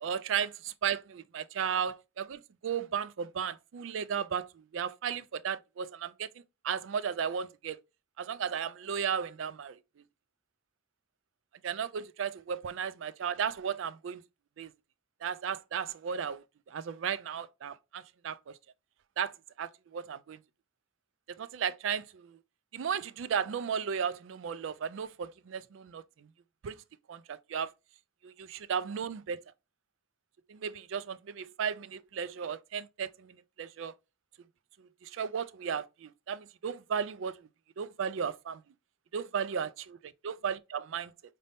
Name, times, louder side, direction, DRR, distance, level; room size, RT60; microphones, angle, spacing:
voice 1, 0.0-6.3 6.6-7.8 8.2-9.8 11.6-14.2 14.6-14.7 15.2-18.6 19.2-19.3 19.6-20.4 21.4-22.4 22.7-26.0 26.6-26.8 27.1-27.7 28.2-29.4 30.5-33.9 34.8-37.5 37.8-38.6 39.1-40.0 40.2-41.1, right 7 dB, 70° right, 0.4 m, -35 dB
5.1 x 2.7 x 3.3 m
head